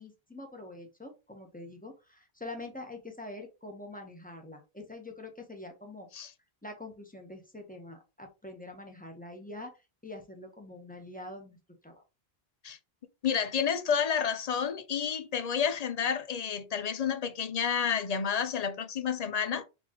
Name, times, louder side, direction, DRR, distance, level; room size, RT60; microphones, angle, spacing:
voice 1, 0.0-6.1 6.6-11.6 11.8-12.0, left 2 dB, 10° left, 1.0 m, -45 dB
voice 2, 13.2-19.6, left 7 dB, 50° left, 0.5 m, -30 dB
4.2 x 3.3 x 3.0 m
omnidirectional pair, 1.0 m